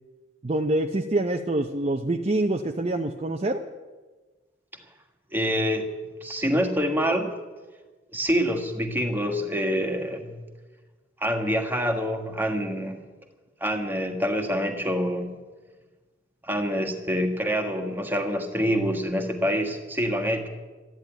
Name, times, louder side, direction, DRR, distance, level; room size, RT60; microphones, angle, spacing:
voice 1, 0.4-3.7, right 1 dB, 35° right, 4 dB, 0.6 m, -26 dB
voice 2, 5.3-5.9 6.2-7.4 8.1-10.4 11.2-13.0 13.6-15.3 16.4-20.5, equal, 10° right, 4 dB, 1.5 m, -26 dB
13.5 x 11.0 x 9.1 m, 1.3 s
head